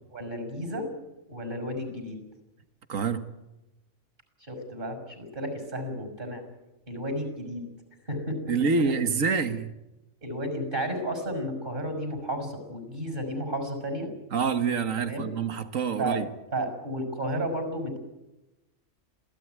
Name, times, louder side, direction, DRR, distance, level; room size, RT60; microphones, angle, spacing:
voice 1, 0.1-0.9 1.3-2.2 4.4-6.4 6.9-7.6 8.1-8.5 8.8-8.9 10.2-14.1 15.0-15.3 16.0-16.2 16.5-18.0, equal, 40° right, 7 dB, 6.5 m, -32 dB
voice 2, 2.9-3.2 8.5-9.7 14.3-16.3, right 5 dB, 80° right, 10 dB, 1.9 m, -26 dB
27.5 x 17.0 x 9.5 m, 0.98 s
omnidirectional pair, 1.4 m